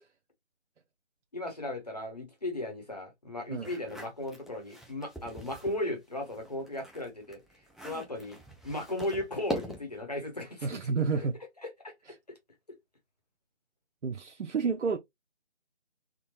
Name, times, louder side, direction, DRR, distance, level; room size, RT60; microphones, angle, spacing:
voice 1, 1.3-7.4 7.8-8.4 8.6-10.7 11.1-11.3 11.6-11.9 12.7-12.8, left 1 dB, 35° left, 1.0 m, -36 dB
sound 1, 3.6-5.8 6.2-10.0, equal, ahead, 0.4 m, -42 dB
voice 2, 10.6-11.4 14.0-15.0, right 5 dB, 80° right, 0.6 m, -30 dB
3.6 x 2.1 x 3.0 m
figure-of-eight pair, 180°, 35 cm